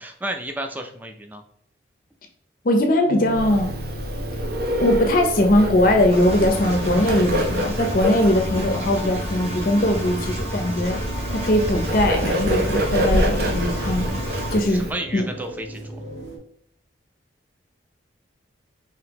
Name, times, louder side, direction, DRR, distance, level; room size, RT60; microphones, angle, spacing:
voice 1, 0.0-1.4 14.7-16.0, right 1 dB, 10° right, 4 dB, 0.4 m, -32 dB
voice 2, 2.6-3.7 4.8-11.0 11.3-14.1 14.5-14.8 15.1-15.3, left 1 dB, 45° left, 4 dB, 0.5 m, -20 dB
sound 1, 3.0-16.4, right 1 dB, 75° right, 1.3 m, -36 dB
Bird, 3.3-14.9, equal, 55° right, 0.7 m, -27 dB
Engine, 6.1-14.5, equal, 35° right, 1.4 m, -31 dB
5.1 x 2.8 x 2.9 m, 0.66 s
head